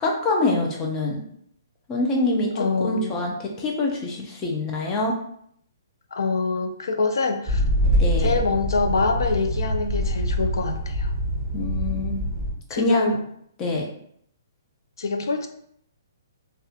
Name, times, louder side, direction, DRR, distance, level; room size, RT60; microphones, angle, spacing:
voice 1, 0.0-1.2 1.9-2.5 2.8-5.2 8.0-8.3 11.5-12.3 12.7-13.1 13.6-13.8, left 2 dB, 15° left, 0 dB, 0.4 m, -25 dB
voice 2, 2.6-3.2 6.1-7.6 8.2-11.1 12.7-13.2 15.0-15.5, left 4 dB, 85° left, 6 dB, 0.4 m, -25 dB
sound 1, 7.5-12.5, equal, ahead, 1.2 m, -24 dB
2.3 x 2.1 x 2.7 m, 0.68 s
hypercardioid pair, 170°, 2 cm